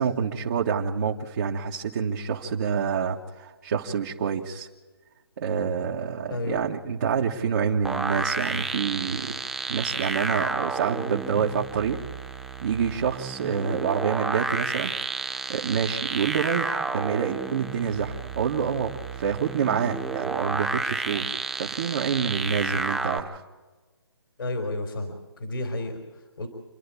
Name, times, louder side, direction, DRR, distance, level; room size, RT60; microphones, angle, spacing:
voice 1, 0.0-4.7 5.4-9.4 9.7-12.0 12.6-23.4, right 7 dB, 45° right, -1 dB, 1.6 m, -27 dB
voice 2, 6.3-6.6 24.4-26.5, left 2 dB, 70° left, 4 dB, 3.9 m, -32 dB
sound 1, 7.8-23.2, right 4 dB, 5° right, 0.7 m, -31 dB
28.0 x 11.0 x 8.5 m, 1.3 s
hypercardioid pair, 150°, 13 cm